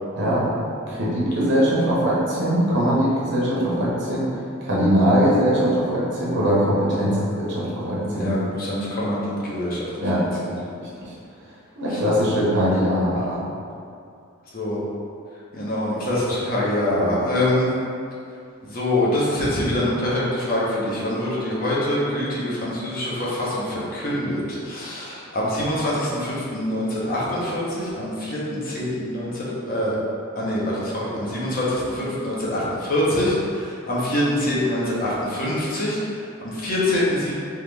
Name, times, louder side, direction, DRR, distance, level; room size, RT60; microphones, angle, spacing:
voice 1, 0.9-4.3 4.6-8.3 10.0-10.2 11.8-13.4, equal, 60° right, -7 dB, 1.0 m, -21 dB
voice 2, 8.0-10.5 11.9-12.0 14.5-14.8 15.5-17.7 18.6-30.0 30.4-37.4, left 1 dB, 45° left, -7 dB, 0.9 m, -25 dB
3.6 x 3.0 x 3.4 m, 2.4 s
head